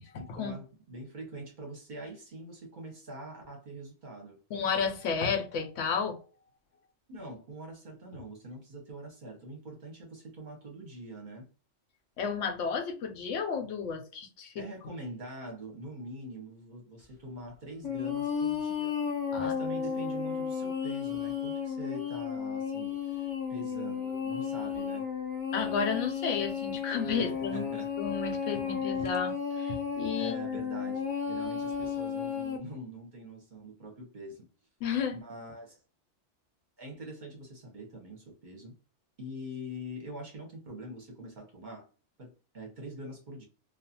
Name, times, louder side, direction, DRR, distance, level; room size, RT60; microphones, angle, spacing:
voice 1, 0.2-4.4 7.1-11.5 14.6-25.1 27.2-27.9 30.2-34.5 35.1-35.8 36.8-38.7 39.2-41.9 42.2-43.5, right 1 dB, 45° right, 0.8 m, -44 dB
voice 2, 4.5-6.2 12.2-14.6 19.3-19.6 25.5-27.6 28.0-30.3 34.8-35.2, left 6 dB, 80° left, 1.0 m, -32 dB
sound 1, 17.8-32.6, left 7 dB, 40° left, 0.7 m, -33 dB
2.4 x 2.3 x 2.7 m
omnidirectional pair, 1.2 m